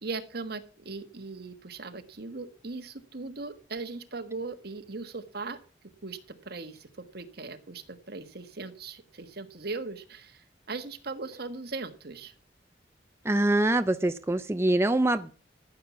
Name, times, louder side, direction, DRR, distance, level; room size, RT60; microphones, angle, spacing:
voice 1, 0.0-5.6 6.0-12.3, right 3 dB, 60° right, 8 dB, 1.5 m, -39 dB
voice 2, 13.3-15.3, right 1 dB, 15° right, 10 dB, 0.5 m, -24 dB
14.0 x 7.2 x 5.9 m, 0.41 s
head